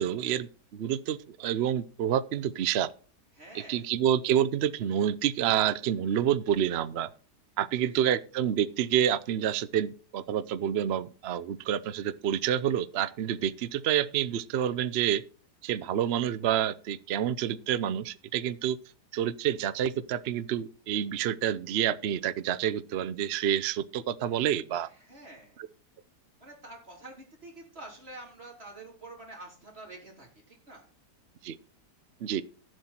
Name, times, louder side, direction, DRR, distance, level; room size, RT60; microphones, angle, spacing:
voice 1, 0.0-2.9 3.7-7.1 7.6-15.2 15.6-18.8 19.1-24.9 31.4-31.6 32.2-32.4, right 10 dB, 70° right, 0.6 m, -28 dB
voice 2, 3.3-3.9 7.8-8.0 24.8-25.6 26.4-30.9, right 2 dB, 35° right, 3.7 m, -48 dB
14.0 x 7.8 x 4.4 m
omnidirectional pair, 1.8 m